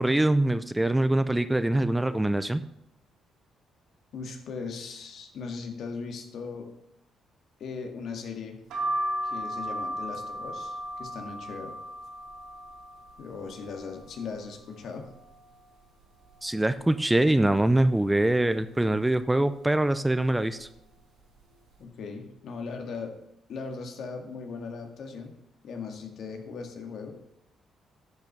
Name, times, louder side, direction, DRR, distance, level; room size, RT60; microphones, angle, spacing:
voice 1, 0.0-2.6 16.4-20.7, right 1 dB, 10° right, 12 dB, 0.5 m, -24 dB
voice 2, 4.1-6.7 7.6-8.6 9.2-11.8 13.2-15.1 21.8-23.2 23.5-25.3 25.6-27.2, left 5 dB, 70° left, 4 dB, 1.9 m, -38 dB
sound 1, 8.7-14.4 14.8-15.6 16.0-16.1 16.3-17.4 17.9-18.3 19.0-19.3 20.1-20.4 20.6-20.8, equal, 85° right, 3.2 m, -36 dB
10.5 x 6.0 x 6.7 m, 0.79 s
cardioid pair, 90°, 0 cm